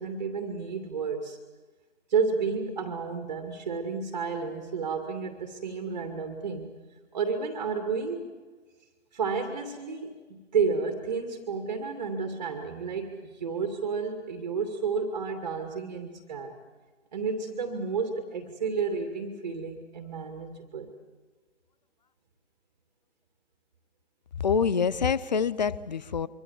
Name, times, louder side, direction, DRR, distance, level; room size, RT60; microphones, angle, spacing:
voice 1, 0.0-1.4 2.1-6.7 7.1-8.3 9.1-16.5 17.1-20.9, right 5 dB, 35° right, 5 dB, 2.3 m, -31 dB
voice 2, 24.4-26.3, left 6 dB, 35° left, 19 dB, 0.7 m, -26 dB
25.0 x 25.0 x 7.4 m, 1.3 s
figure-of-eight pair, 145°, 36 cm